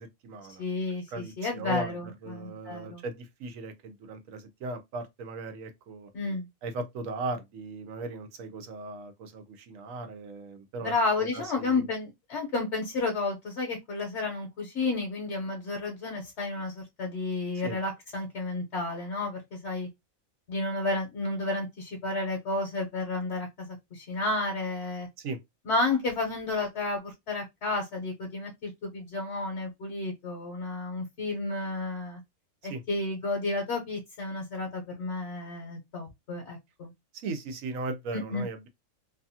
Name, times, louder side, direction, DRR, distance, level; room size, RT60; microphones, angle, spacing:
voice 1, 0.0-0.6 1.1-6.1 6.6-11.9 17.6-17.8 25.2-25.4 32.7-32.8 37.2-38.7, right 3 dB, 80° right, 1.0 m, -38 dB
voice 2, 0.6-3.0 6.1-6.5 10.8-19.9 20.5-25.1 25.7-32.2 32.6-36.9 38.1-38.5, left 3 dB, 60° left, 1.0 m, -31 dB
2.7 x 2.3 x 2.7 m
omnidirectional pair, 1.4 m